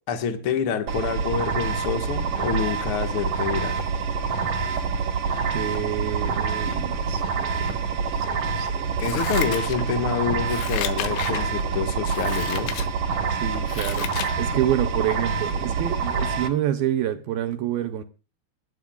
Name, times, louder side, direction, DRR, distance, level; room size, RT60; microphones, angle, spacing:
voice 1, 0.1-3.9 9.0-12.7, left 7 dB, 60° left, 1.4 m, -27 dB
sound 1, 0.9-16.5, right 5 dB, 55° right, 1.8 m, -26 dB
voice 2, 5.5-7.2 7.5-8.9 13.3-18.0, right 11 dB, 75° right, 2.4 m, -28 dB
Scissors, 9.0-10.1 10.4-11.5 12.1-12.9 13.3-14.4 14.8-14.9, left 11 dB, 85° left, 3.5 m, -33 dB
25.0 x 11.5 x 2.4 m
omnidirectional pair, 5.1 m